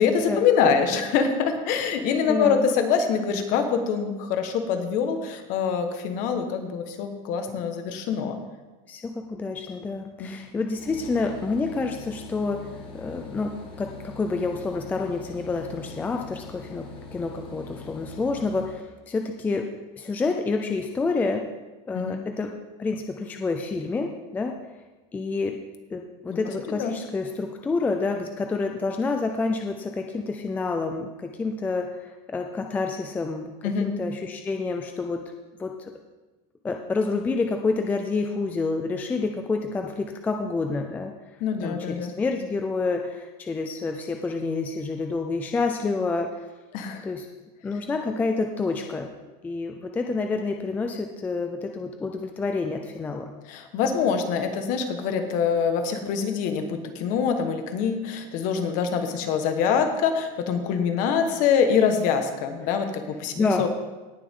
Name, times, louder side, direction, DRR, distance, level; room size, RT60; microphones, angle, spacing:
voice 1, 0.0-8.4 10.2-10.3 21.9-22.2 26.3-26.4 26.8-26.9 33.6-33.9 41.4-42.1 46.7-47.1 53.5-63.7, left 6 dB, 45° left, 6 dB, 1.4 m, -24 dB
voice 2, 2.3-2.7 8.9-19.7 20.0-21.5 21.9-22.5 22.8-24.6 25.1-25.6 25.9-35.2 35.6-35.9 36.6-41.1 41.6-46.5 47.0-47.3 47.6-49.1 49.4-53.3 63.3-63.7, left 3 dB, 10° left, 4 dB, 0.4 m, -28 dB
sound 1, 10.8-18.7, left 4 dB, 25° left, 1.6 m, -42 dB
18.0 x 7.0 x 3.7 m, 1.2 s
supercardioid pair, 170°, 19 cm